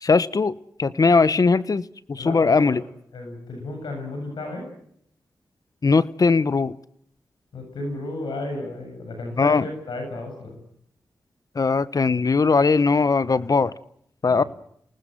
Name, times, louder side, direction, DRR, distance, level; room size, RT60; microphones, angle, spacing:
voice 1, 0.0-2.8 5.8-6.7 9.4-9.6 11.5-13.7 14.2-14.4, left 4 dB, 50° left, 16 dB, 1.1 m, -19 dB
voice 2, 2.2-2.8 3.1-4.7 7.5-10.6 14.3-14.5, left 2 dB, 85° left, 3 dB, 7.4 m, -33 dB
28.5 x 19.5 x 7.9 m, 0.70 s
cardioid pair, 45°, 8 cm